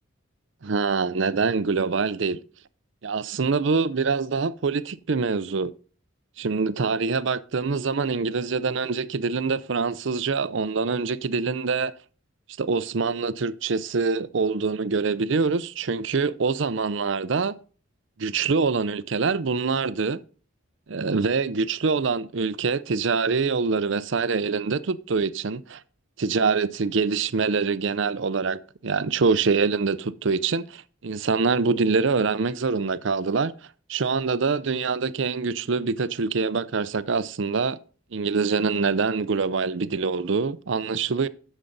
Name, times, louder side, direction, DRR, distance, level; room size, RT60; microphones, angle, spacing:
voice 1, 0.6-2.4 3.0-5.7 6.4-11.9 12.6-17.5 18.2-20.2 20.9-25.8 26.2-33.5 33.9-37.8 38.1-41.3, right 4 dB, 60° right, 0.6 m, -25 dB
9.9 x 7.2 x 4.0 m
head